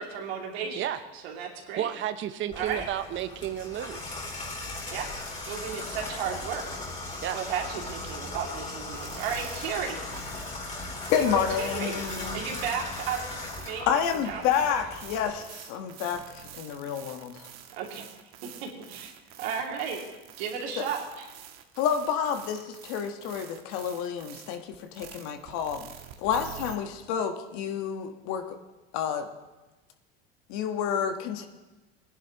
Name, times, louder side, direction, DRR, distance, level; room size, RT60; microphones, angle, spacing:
voice 1, 0.0-1.9 2.6-2.9 4.9-5.1 5.5-6.6 7.0-10.0 10.4-10.5 11.2-13.3 13.7-13.9 14.2-14.4 17.8-18.1 18.4-19.1 19.4-20.0 20.4-21.3, right 7 dB, 85° right, 0 dB, 2.5 m, -34 dB
voice 2, 1.8-4.1 7.2-7.4, right 11 dB, 40° right, 10 dB, 0.7 m, -32 dB
Water tap faucet / Bathtub (filling or washing), 2.5-15.3, left 2 dB, 25° left, 3.4 m, -38 dB
sound 1, 8.9-26.7, right 10 dB, 60° right, 1.3 m, -48 dB
voice 3, 11.1-12.4 13.9-17.5 20.8-20.9 21.8-25.9 26.2-28.6 28.9-29.3 30.5-31.5, left 8 dB, 65° left, 6 dB, 1.3 m, -29 dB
19.5 x 10.5 x 3.0 m, 1.1 s
supercardioid pair, 95°, 30 cm